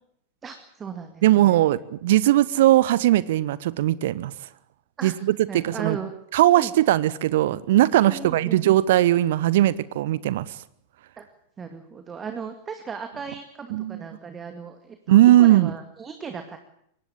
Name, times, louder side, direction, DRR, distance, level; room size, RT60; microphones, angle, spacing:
voice 1, 0.4-1.6 5.0-5.1 5.5-6.1 6.5-6.7 8.0-8.6 11.2-11.3 11.6-16.6, right 6 dB, 20° right, 7 dB, 2.2 m, -36 dB
voice 2, 1.2-4.3 5.0-6.0 6.3-10.6 13.7-14.0 15.1-15.7, right 14 dB, 55° right, 19 dB, 0.9 m, -19 dB
23.5 x 18.5 x 8.6 m, 0.73 s
figure-of-eight pair, 90°, 0 cm